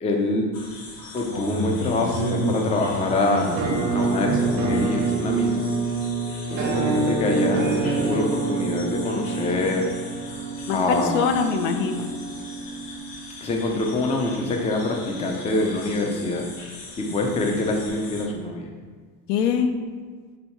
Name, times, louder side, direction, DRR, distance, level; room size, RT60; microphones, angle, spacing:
voice 1, 0.0-0.5 1.1-3.6 3.9-5.6 6.5-9.9 10.7-11.3 13.4-16.5 17.0-18.7, left 2 dB, 15° left, 2 dB, 0.4 m, -25 dB
sound 1, 0.5-18.3, equal, 45° left, 1.1 m, -35 dB
Musical instrument, 3.6-13.4, right 3 dB, 90° right, 0.9 m, -26 dB
voice 2, 10.7-12.1 17.1-17.2 17.4-17.5 19.3-19.7, left 6 dB, 75° left, 6 dB, 0.6 m, -23 dB
4.2 x 2.8 x 4.4 m, 1.5 s
supercardioid pair, 95°, 49 cm